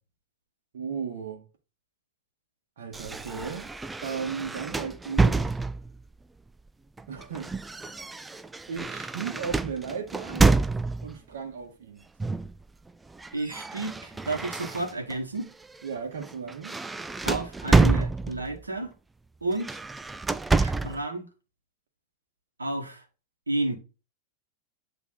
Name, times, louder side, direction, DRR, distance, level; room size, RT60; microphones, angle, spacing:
voice 1, 0.7-1.5 2.8-3.7 4.0-5.5 7.1-7.5 8.7-10.4 11.0-12.0 15.8-16.8, right 6 dB, 60° right, 1.4 m, -35 dB
sound 1, 2.9-6.0 7.0-11.2 12.2-12.6 12.9-15.2 15.6-15.8 16.2-18.6 19.5-21.0, right 3 dB, 10° right, 0.3 m, -27 dB
voice 2, 13.3-15.5 17.2-18.9 19.4-19.8 20.6-21.3 22.6-23.0 23.5-23.7, right 2 dB, 80° right, 1.3 m, -31 dB
8.3 x 3.4 x 3.8 m
figure-of-eight pair, 90°, 0 cm